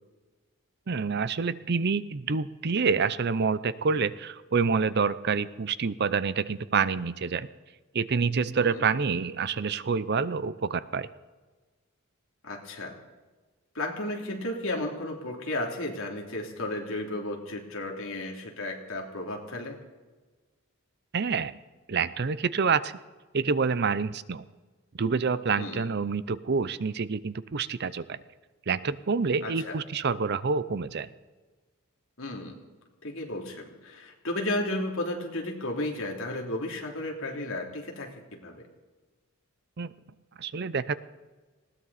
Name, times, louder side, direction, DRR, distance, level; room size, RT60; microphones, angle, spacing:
voice 1, 0.9-7.5 7.9-11.1 21.1-21.5 21.9-22.9 23.3-24.4 24.9-28.2 28.7-31.1 39.8-39.9 40.4-40.9, right 5 dB, 50° right, 16 dB, 0.5 m, -27 dB
voice 2, 12.4-13.0 13.7-19.8 25.6-25.9 29.4-29.7 32.2-32.5 33.0-38.1 38.4-38.5, left 1 dB, 65° left, 1 dB, 2.9 m, -33 dB
20.0 x 17.0 x 4.1 m, 1.3 s
head